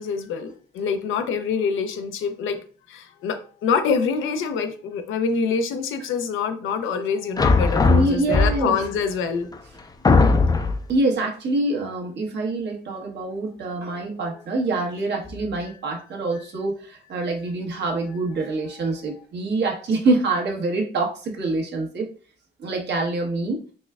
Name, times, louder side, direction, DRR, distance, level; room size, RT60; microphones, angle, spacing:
voice 1, 0.0-2.6 2.9-9.5 13.9-14.2 15.6-15.7 18.8-18.9, left 5 dB, 85° left, 0.6 m, -26 dB
sound 1, 7.4-8.9 9.5-9.6 10.0-10.9, left 4 dB, 20° left, 0.4 m, -18 dB
voice 2, 7.9-8.8 10.9-22.1 22.6-23.6, right 2 dB, 60° right, 1.2 m, -25 dB
4.2 x 3.3 x 2.3 m
cardioid pair, 90°, 20 cm